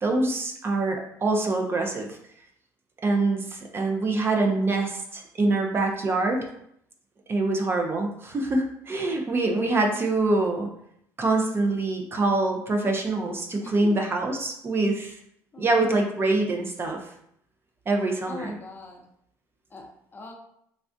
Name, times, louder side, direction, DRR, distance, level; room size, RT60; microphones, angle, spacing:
voice 1, 0.0-2.2 3.0-6.4 7.3-10.7 11.2-15.2 15.6-17.0 17.9-18.5, right 2 dB, 35° right, 2 dB, 0.5 m, -25 dB
voice 2, 13.6-13.9 15.5-15.9 18.2-19.0 19.7-20.3, left 3 dB, 30° left, 1 dB, 0.6 m, -42 dB
3.2 x 2.4 x 2.5 m, 0.72 s
supercardioid pair, 80°, 7 cm